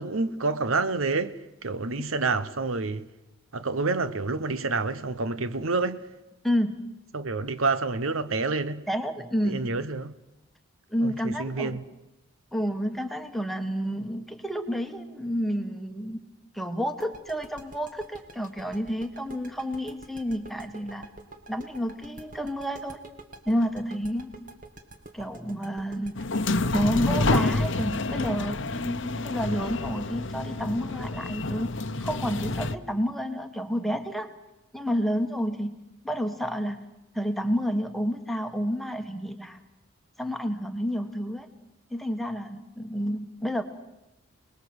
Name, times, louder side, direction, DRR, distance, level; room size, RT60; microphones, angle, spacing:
voice 1, 0.0-3.1 3.5-6.1 7.1-8.9 9.4-10.1 11.0-11.8, right 3 dB, 70° right, 1.0 m, -28 dB
voice 2, 6.4-6.8 8.9-9.7 10.9-11.8 12.5-16.2 16.5-21.1 21.5-23.0 23.5-24.3 25.1-26.2 26.7-31.7 32.0-34.3 34.7-36.9 37.1-39.6 40.2-41.5 41.9-43.6, equal, ahead, 1.5 m, -30 dB
sound 1, 17.0-29.7, right 2 dB, 40° right, 2.1 m, -47 dB
sound 2, 26.2-32.8, left 2 dB, 55° left, 0.9 m, -28 dB
28.5 x 20.5 x 7.9 m
head